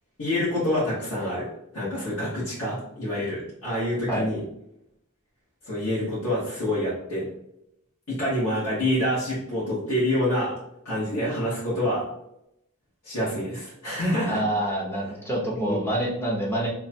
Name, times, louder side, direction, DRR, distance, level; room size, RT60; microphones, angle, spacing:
voice 1, 0.2-1.5 1.7-4.4 5.6-7.2 8.1-10.5 10.8-12.1 13.0-14.4 15.5-15.9, left 1 dB, 90° left, -10 dB, 1.4 m, -27 dB
voice 2, 14.3-16.7, right 1 dB, 10° left, -4 dB, 0.8 m, -27 dB
3.0 x 2.3 x 4.3 m, 0.80 s
head